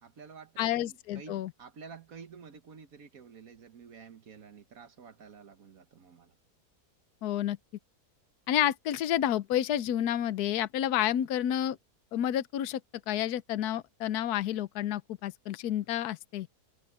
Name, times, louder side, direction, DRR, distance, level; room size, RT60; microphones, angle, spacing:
voice 1, 0.0-6.3, right 6 dB, 60° right, 1.5 m, -50 dB
voice 2, 0.6-1.5 7.2-7.6 8.5-11.8 12.1-12.8 13.1-16.5, left 11 dB, 75° left, 1.2 m, -30 dB
omnidirectional pair, 1.7 m